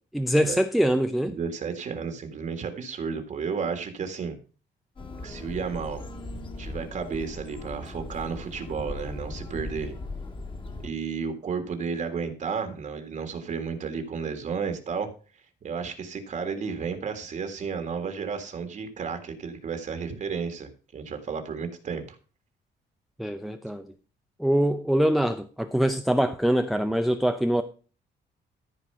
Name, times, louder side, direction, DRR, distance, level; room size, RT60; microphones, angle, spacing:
voice 1, 0.1-1.4 23.2-23.9 24.4-27.6, equal, ahead, 8 dB, 0.6 m, -24 dB
voice 2, 1.3-4.4 5.2-6.0 6.6-9.9 10.8-15.1 15.6-22.2, right 5 dB, 40° right, 7 dB, 1.8 m, -32 dB
sound 1, 5.0-10.9, left 2 dB, 25° left, 1.9 m, -38 dB
14.0 x 4.8 x 5.5 m, 0.36 s
cardioid pair, 155°, 19 cm